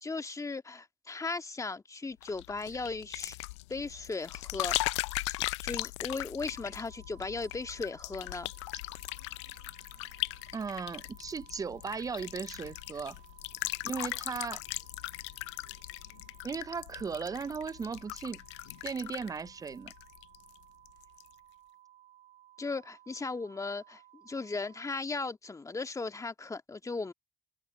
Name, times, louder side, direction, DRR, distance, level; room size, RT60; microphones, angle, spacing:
voice 1, 0.0-3.4 3.7-8.5 22.6-27.1, left 3 dB, 20° left, 1.7 m, -37 dB
sound 1, 2.2-20.6 20.9-21.3, left 21 dB, 80° left, 0.5 m, -39 dB
sound 2, 6.5-25.0, right 13 dB, 50° right, 4.5 m, -59 dB
voice 2, 10.5-13.2 13.8-14.6 16.4-18.4 18.8-19.9, right 5 dB, 25° right, 0.5 m, -37 dB
hypercardioid pair, 55°, 15 cm